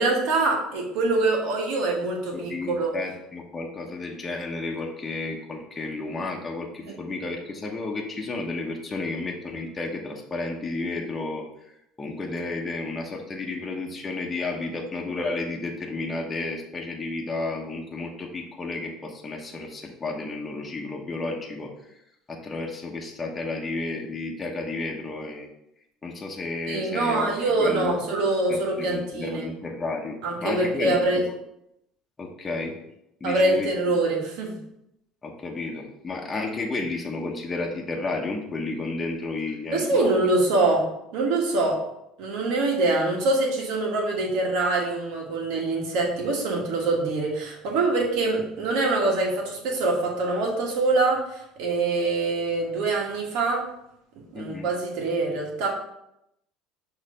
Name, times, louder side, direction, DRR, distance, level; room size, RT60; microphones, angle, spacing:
voice 1, 0.0-2.9 6.8-7.0 26.7-29.4 30.2-31.2 33.2-34.6 39.7-40.9 41.1-41.8 42.2-53.6 54.3-55.7, right 2 dB, 75° right, 0 dB, 1.7 m, -24 dB
voice 2, 2.3-21.7 22.3-25.5 26.0-27.3 27.6-27.9 28.5-30.2 30.4-31.3 32.2-32.8 33.2-33.7 35.2-40.1 54.3-54.7, left 3 dB, 20° left, -1 dB, 1.0 m, -32 dB
6.4 x 3.2 x 5.0 m, 0.81 s
cardioid pair, 125°, 0 cm